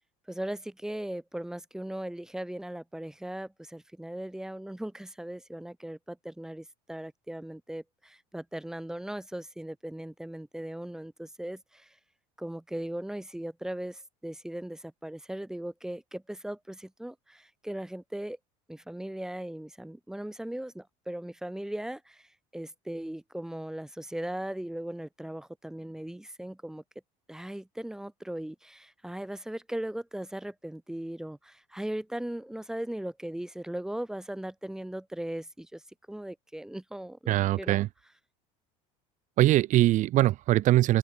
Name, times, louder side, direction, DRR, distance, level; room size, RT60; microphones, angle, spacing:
voice 1, 0.3-11.9 12.4-18.4 18.7-22.3 22.5-26.8 27.3-35.8 36.1-37.8, right 1 dB, 5° right, 1.6 m, -38 dB
voice 2, 37.3-37.9 39.4-41.0, right 15 dB, 50° right, 1.1 m, -22 dB
open air
supercardioid pair, 125°, 16 cm